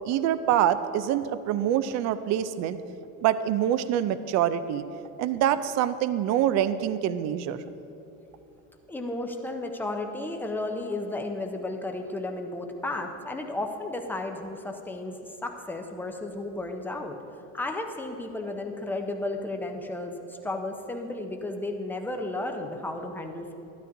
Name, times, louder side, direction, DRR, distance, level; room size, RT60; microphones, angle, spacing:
voice 1, 0.1-2.8 3.2-4.8 5.2-7.6, right 10 dB, 45° right, 13 dB, 0.4 m, -25 dB
voice 2, 8.9-17.2 17.5-23.5, left 2 dB, 5° left, 4 dB, 0.6 m, -33 dB
12.5 x 12.0 x 2.6 m, 2.9 s
cardioid pair, 130°, 38 cm